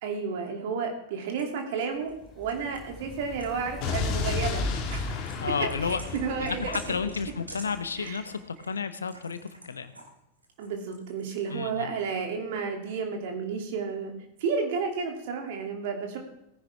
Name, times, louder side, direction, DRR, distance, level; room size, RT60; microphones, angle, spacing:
voice 1, 0.0-4.6 4.9-5.2 5.8-6.8 8.0-8.2 10.6-14.1 14.4-16.2, right 5 dB, 50° right, 3 dB, 2.8 m, -32 dB
sound 1, 1.4-2.8 3.4-3.8 4.0-10.1 10.4-11.4, right 2 dB, 80° right, 2.3 m, -48 dB
sound 2, 2.0-6.7, left 3 dB, 25° left, 2.4 m, -47 dB
Explosion, 3.8-7.9, left 4 dB, 40° left, 2.0 m, -32 dB
voice 2, 5.4-6.0 6.4-9.9 11.5-11.9, left 5 dB, 70° left, 12 dB, 0.9 m, -32 dB
17.5 x 10.5 x 3.5 m, 0.83 s
figure-of-eight pair, 90°, 0 cm